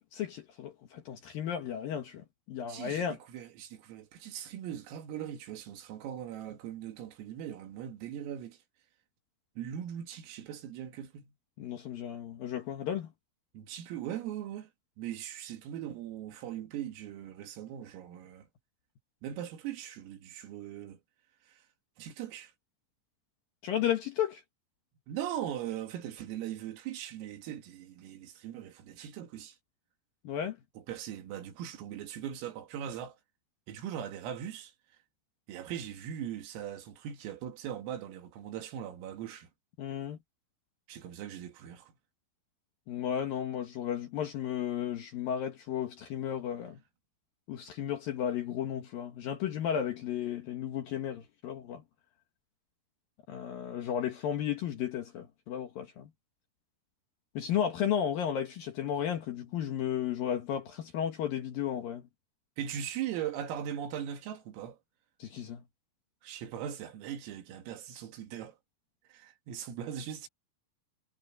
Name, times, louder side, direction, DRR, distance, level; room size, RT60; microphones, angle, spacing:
voice 1, 0.0-3.2 11.6-13.1 23.6-24.4 30.2-30.6 39.8-40.2 42.9-46.8 47.5-51.8 53.3-56.1 57.3-62.0 65.2-65.6, left 9 dB, 70° left, 2.2 m, -34 dB
voice 2, 2.7-8.6 9.6-11.3 13.5-14.7 15.0-18.5 19.2-21.0 21.5-21.6 22.0-22.5 25.1-29.6 30.8-33.2 33.7-34.7 35.5-39.5 40.9-41.9 62.6-64.8 66.2-68.6 69.1-70.3, right 10 dB, 80° right, 4.9 m, -40 dB
omnidirectional pair, 5.9 m